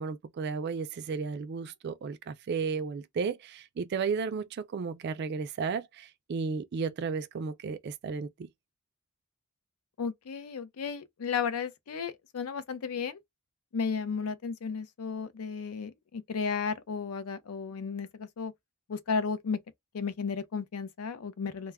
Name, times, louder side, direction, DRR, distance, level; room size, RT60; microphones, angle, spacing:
voice 1, 0.0-8.5, right 5 dB, 50° right, 0.3 m, -34 dB
voice 2, 10.0-13.2 13.7-18.5 18.9-19.6 19.9-21.7, left 5 dB, 85° left, 0.5 m, -34 dB
2.2 x 2.1 x 3.3 m
head